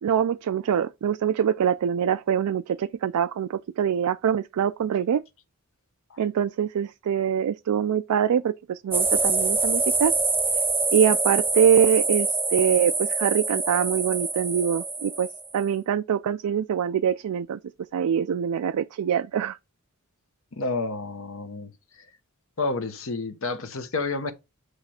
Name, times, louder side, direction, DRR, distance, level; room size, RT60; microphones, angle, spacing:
voice 1, 0.0-5.2 6.2-10.1 10.9-15.3 15.5-17.6 17.9-19.6, right 8 dB, 85° right, 0.3 m, -24 dB
sound 1, 8.9-15.6, right 3 dB, 10° right, 0.8 m, -25 dB
voice 2, 20.5-21.7 22.6-24.3, left 3 dB, 65° left, 0.9 m, -30 dB
8.1 x 3.2 x 4.2 m
head